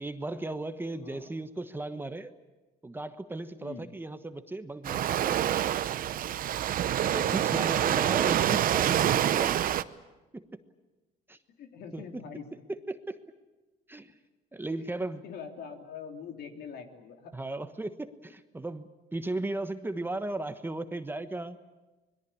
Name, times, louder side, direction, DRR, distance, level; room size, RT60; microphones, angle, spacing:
voice 1, 0.0-2.3 2.8-5.9 6.9-9.8 10.3-10.6 11.3-11.4 11.9-12.0 12.9-13.2 13.9-14.1 14.5-15.2 17.3-21.6, right 2 dB, 10° right, 10 dB, 1.2 m, -36 dB
voice 2, 1.0-1.3 3.6-3.8 7.1-7.4 11.6-12.5 14.7-17.3, left 6 dB, 70° left, 4 dB, 3.1 m, -44 dB
Waves surf, 4.8-9.8, right 11 dB, 55° right, 0.8 m, -26 dB
26.0 x 21.5 x 8.6 m, 1.1 s
cardioid pair, 110°, 17 cm